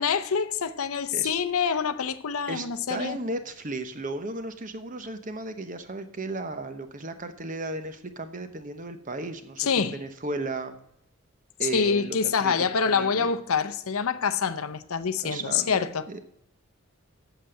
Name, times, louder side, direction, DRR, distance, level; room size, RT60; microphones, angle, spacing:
voice 1, 0.0-3.2 9.6-10.0 11.6-16.1, left 6 dB, 75° left, 0.6 m, -26 dB
voice 2, 2.5-10.8 11.6-12.5 12.8-13.3 15.2-16.2, right 2 dB, 35° right, 0.9 m, -35 dB
8.1 x 6.8 x 7.6 m
head